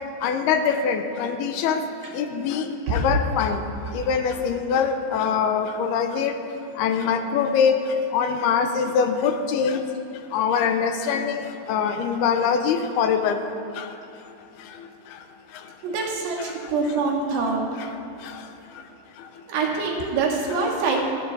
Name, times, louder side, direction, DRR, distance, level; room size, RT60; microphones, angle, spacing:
voice 1, 0.2-1.8 2.1-2.6 2.9-3.6 3.9-6.4 6.8-7.8 8.1-9.8 10.3-11.4 11.7-13.4 13.8-13.9, left 6 dB, 80° left, 7 dB, 2.7 m, -23 dB
voice 2, 15.8-17.6 19.5-21.0, right 4 dB, 80° right, 0 dB, 3.9 m, -25 dB
27.5 x 10.0 x 3.9 m, 2.6 s
omnidirectional pair, 4.7 m